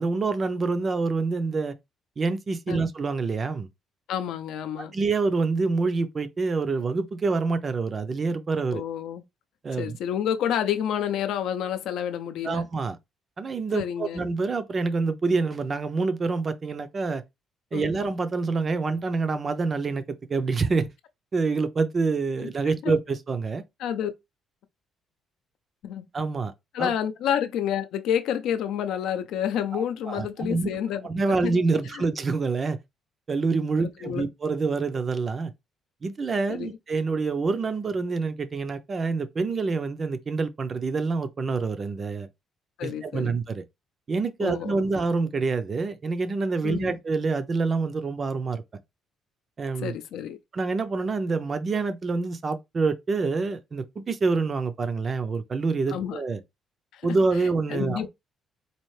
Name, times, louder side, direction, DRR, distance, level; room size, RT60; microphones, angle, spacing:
voice 1, 0.0-1.7 2.2-3.7 4.8-8.8 9.6-10.0 12.4-13.0 13.4-17.2 17.7-20.9 21.3-23.6 26.1-26.5 26.8-26.9 29.7-30.7 31.0-32.8 33.3-35.5 36.0-42.3 42.8-43.6 44.1-48.6 49.6-50.0 50.5-56.4 57.0-58.1, right 4 dB, 25° right, 0.4 m, -26 dB
voice 2, 4.1-4.9 8.7-9.2 9.8-12.7 13.7-14.2 17.7-17.9 22.4-22.5 22.8-22.9 23.8-24.1 25.8-26.1 26.7-31.1 31.4-31.5 31.9-32.0 33.8-34.3 36.5-36.8 42.8-43.4 44.4-44.8 46.6-47.0 49.8-50.4 55.9-56.2 56.9-57.2 57.7-58.1, left 9 dB, 70° left, 0.5 m, -29 dB
4.2 x 2.7 x 3.1 m
cardioid pair, 180°, 0 cm